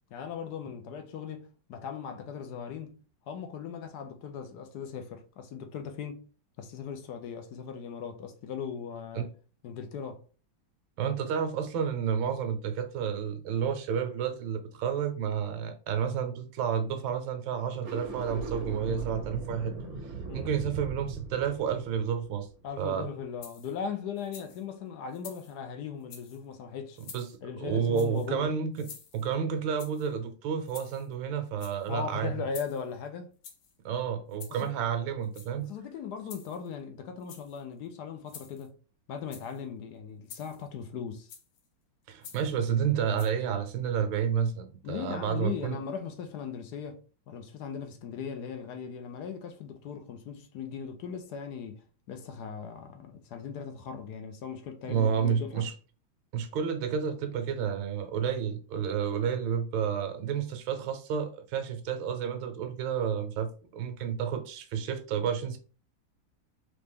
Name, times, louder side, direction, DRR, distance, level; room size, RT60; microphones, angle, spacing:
voice 1, 0.1-3.0 3.3-6.2 6.6-9.3 9.6-10.2 20.3-20.5 22.6-27.0 27.4-28.5 31.9-33.3 34.6-34.7 35.6-38.8 39.1-41.3 44.8-55.7, left 7 dB, 65° left, 1.0 m, -38 dB
voice 2, 11.0-19.7 20.3-22.5 22.8-23.1 27.0-27.3 27.6-28.9 29.1-32.3 33.8-35.7 42.1-45.8 54.9-55.7 56.3-65.6, right 7 dB, 75° right, 1.5 m, -30 dB
sound 1, 17.7-23.0, right 4 dB, 60° right, 1.0 m, -38 dB
sound 2, 23.4-23.8 24.2-24.6 25.1-25.6 26.0-26.4 26.9-27.3 27.9-28.3 28.7-29.3 29.8-30.1 30.6-31.1 31.5-31.9 32.5-32.9 33.4-33.7 34.3-34.7 35.2-35.7 36.3-36.7 37.2-37.6 38.3-38.7 39.2-39.6 40.3-40.7 41.3-41.6 42.2-42.5 43.2-43.3, left 7 dB, 85° left, 1.7 m, -49 dB
3.9 x 3.3 x 3.5 m
omnidirectional pair, 2.3 m